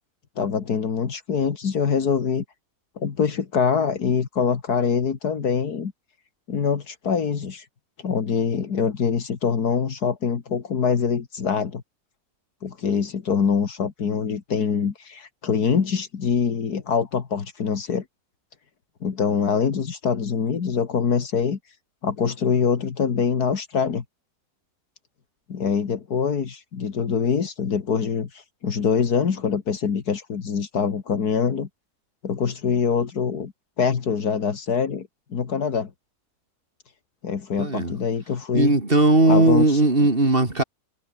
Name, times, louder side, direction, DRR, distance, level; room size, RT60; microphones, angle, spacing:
voice 1, 0.4-2.4 3.0-5.9 6.5-7.7 8.0-11.8 12.6-18.0 19.0-21.6 22.0-24.0 25.5-31.7 32.2-33.5 33.8-35.9 37.2-38.7 39.3-39.8, left 6 dB, 75° left, 2.3 m, -24 dB
voice 2, 37.6-37.9 38.5-40.6, right 2 dB, 35° right, 3.9 m, -18 dB
omnidirectional pair, 1.7 m